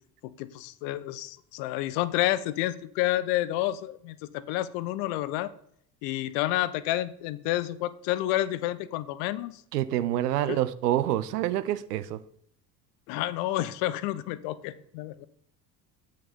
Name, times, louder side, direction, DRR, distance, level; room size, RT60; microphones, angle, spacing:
voice 1, 0.2-5.5 6.0-9.6 10.5-10.6 13.1-15.3, left 15 dB, 50° left, 16 dB, 0.6 m, -29 dB
voice 2, 9.7-12.2, right 13 dB, 70° right, 15 dB, 0.6 m, -27 dB
8.4 x 6.2 x 4.3 m, 0.66 s
figure-of-eight pair, 60°, 50 cm